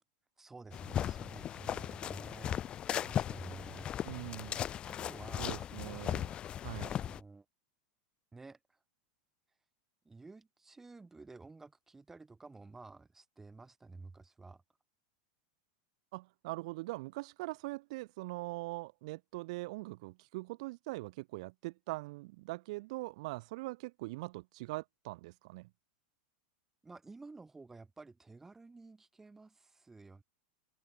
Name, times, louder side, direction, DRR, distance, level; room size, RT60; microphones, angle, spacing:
voice 1, 0.4-2.6 2.9-3.9 4.8-6.1 6.8-7.4 8.3-8.6 10.0-14.6 26.8-30.2, right 3 dB, 10° right, 6.8 m, -52 dB
sound 1, 0.7-7.2, left 10 dB, 25° left, 2.1 m, -37 dB
voice 2, 4.0-4.6 5.4-6.3 6.6-6.9 16.1-25.7, right 22 dB, 55° right, 4.0 m, -42 dB
supercardioid pair, 155°, 4 cm